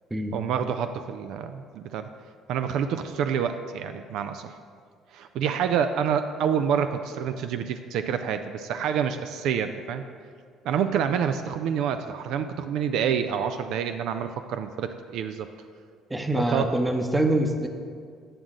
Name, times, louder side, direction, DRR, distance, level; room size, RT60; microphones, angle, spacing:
voice 1, 0.3-2.1 2.5-4.6 5.1-10.0 10.6-15.5 16.3-16.7, right 8 dB, 75° right, 9 dB, 0.3 m, -27 dB
voice 2, 16.1-17.7, right 1 dB, 15° right, 5 dB, 0.8 m, -24 dB
8.9 x 6.2 x 3.7 m, 2.1 s
supercardioid pair, 85°, 0 cm